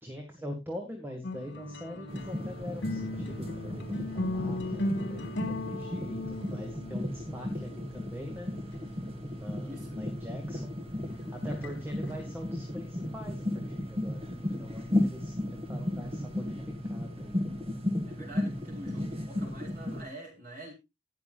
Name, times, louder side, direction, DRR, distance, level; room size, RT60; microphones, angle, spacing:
voice 1, 0.0-8.5 9.3-10.8 11.2-17.4, equal, 15° right, 2 dB, 2.2 m, -43 dB
sound 1, 1.2-10.2 11.1-12.0, left 1 dB, 75° left, 2.2 m, -37 dB
sound 2, 2.1-20.0, left 1 dB, 35° right, 2.3 m, -35 dB
voice 2, 9.6-10.0 18.1-20.7, right 1 dB, 55° right, -2 dB, 5.3 m, -45 dB
19.5 x 6.8 x 2.5 m, 0.23 s
head